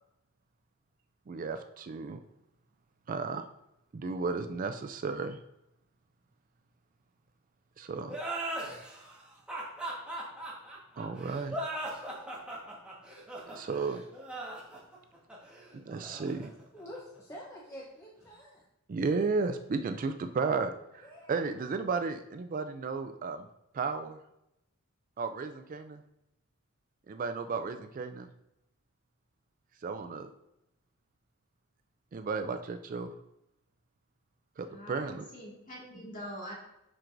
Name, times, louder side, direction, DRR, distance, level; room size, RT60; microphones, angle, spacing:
voice 1, 1.3-2.2 3.1-3.4 3.9-5.4 7.8-8.2 11.0-11.6 13.5-14.0 15.7-16.5 18.9-23.5 23.7-24.2 25.2-26.0 27.1-28.3 29.8-30.3 32.1-33.1 34.6-35.2, right 4 dB, 40° right, 8 dB, 0.3 m, -34 dB
sound 1, 8.1-17.3, right 1 dB, 5° right, 1.3 m, -39 dB
voice 2, 16.7-18.6 21.0-21.5, equal, 15° left, -4 dB, 0.8 m, -47 dB
voice 3, 34.6-36.5, equal, 35° left, -3 dB, 2.0 m, -44 dB
10.5 x 4.5 x 2.6 m, 0.87 s
head